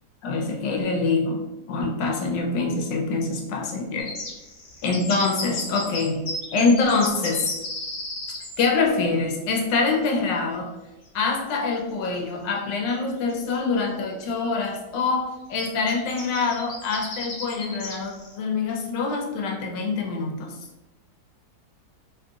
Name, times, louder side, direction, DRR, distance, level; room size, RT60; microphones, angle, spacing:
voice 1, 0.2-4.1 4.8-6.2 6.5-7.5 8.6-10.7 11.1-20.6, left 4 dB, 85° left, 1 dB, 1.4 m, -25 dB
sound 1, 4.0-8.6 11.0-11.1 11.5-11.6 12.9-13.0 13.3-13.8 14.3-14.5 15.6-18.3, left 2 dB, 45° left, 1.0 m, -34 dB
3.3 x 2.4 x 3.7 m, 0.99 s
omnidirectional pair, 1.9 m